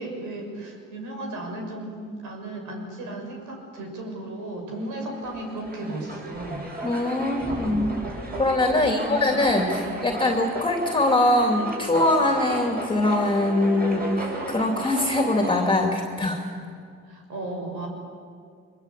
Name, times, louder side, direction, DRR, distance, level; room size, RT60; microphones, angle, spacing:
voice 1, 0.0-6.6 7.5-7.6 8.8-9.4 9.8-10.0 17.1-17.9, right 1 dB, 85° right, 2 dB, 6.4 m, -35 dB
sound 1, 5.0-15.7, right 1 dB, 30° right, 7.5 m, -35 dB
voice 2, 6.8-8.0 8.4-16.4, left 1 dB, 15° left, 2 dB, 2.9 m, -22 dB
23.5 x 22.5 x 8.4 m, 2.2 s
cardioid pair, 90°, 30 cm